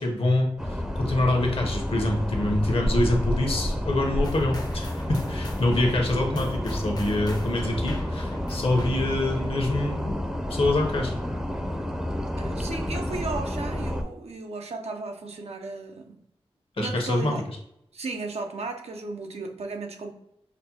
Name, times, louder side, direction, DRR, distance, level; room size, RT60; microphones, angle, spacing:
voice 1, 0.0-10.2 10.5-11.1 16.8-17.3, left 2 dB, 60° left, 1 dB, 0.9 m, -25 dB
sound 1, 0.6-14.0, left 1 dB, 5° right, 0.5 m, -30 dB
sound 2, 4.2-9.4, left 2 dB, 40° left, 0.6 m, -42 dB
voice 2, 12.4-16.2 16.8-17.4 17.9-20.1, right 3 dB, 80° right, 4 dB, 0.6 m, -35 dB
5.0 x 2.1 x 2.8 m, 0.79 s
wide cardioid pair, 70°, 11 cm